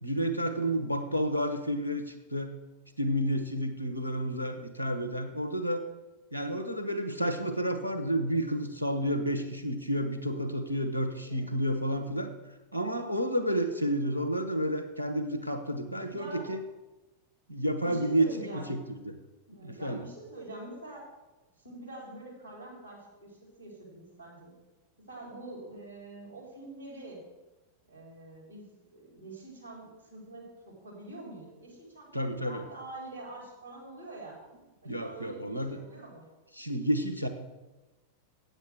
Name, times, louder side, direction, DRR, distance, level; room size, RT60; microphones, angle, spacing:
voice 1, 0.0-2.5 3.0-5.8 6.3-12.3 12.7-16.6 17.5-18.8 19.0-19.2 19.6-20.0 32.1-32.6 34.8-35.8 36.5-37.3, equal, 85° right, 8 dB, 1.0 m, -30 dB
voice 2, 16.1-16.5 17.8-18.7 19.5-21.0 21.6-24.5 25.1-27.2 27.9-34.4 34.8-36.3, right 2 dB, 90° left, -2 dB, 3.9 m, -45 dB
8.3 x 8.0 x 6.4 m, 1.1 s
figure-of-eight pair, 90°, 0 cm